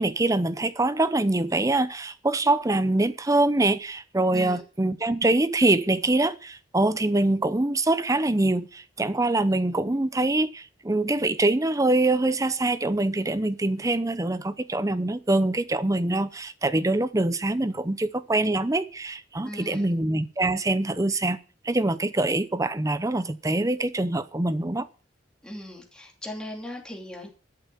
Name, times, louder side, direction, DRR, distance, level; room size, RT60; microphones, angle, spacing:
voice 1, 0.0-21.4 21.6-24.9, right 2 dB, 15° right, 0.7 m, -24 dB
voice 2, 4.3-4.6 19.4-19.9 25.4-27.3, left 1 dB, 5° left, 2.8 m, -38 dB
13.0 x 7.7 x 7.0 m
head